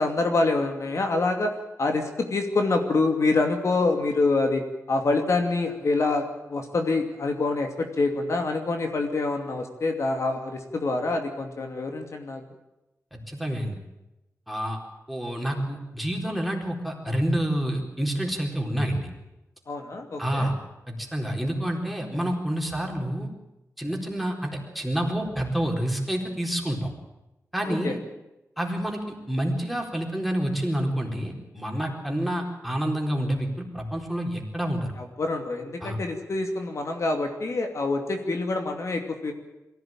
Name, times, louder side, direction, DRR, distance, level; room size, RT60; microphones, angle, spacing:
voice 1, 0.0-1.5 1.8-4.6 4.9-12.4 19.7-20.5 27.7-27.9 35.2-39.3, left 3 dB, 60° left, 4 dB, 2.6 m, -26 dB
voice 2, 13.1-13.8 14.5-14.8 15.1-19.1 20.2-20.5 20.9-23.3 23.8-24.5 24.7-26.9 27.5-28.0 28.6-34.9 35.8-36.0, right 1 dB, ahead, 0 dB, 4.2 m, -28 dB
23.0 x 16.0 x 9.0 m, 0.96 s
wide cardioid pair, 130°, 6 cm